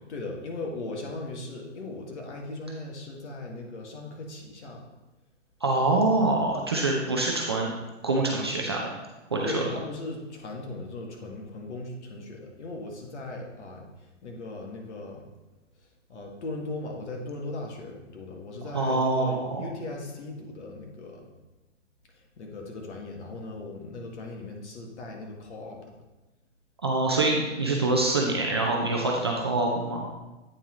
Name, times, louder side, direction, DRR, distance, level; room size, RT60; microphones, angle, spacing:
voice 1, 0.1-4.8 9.4-13.9 14.2-15.2 16.1-21.3 22.4-25.8, left 2 dB, 65° left, 0 dB, 1.8 m, -38 dB
voice 2, 5.6-7.7 8.0-8.9 9.3-9.7 18.6-19.6 26.8-30.1, right 2 dB, 25° right, -1 dB, 0.4 m, -25 dB
8.6 x 4.7 x 3.7 m, 1.1 s
hypercardioid pair, 150°, 37 cm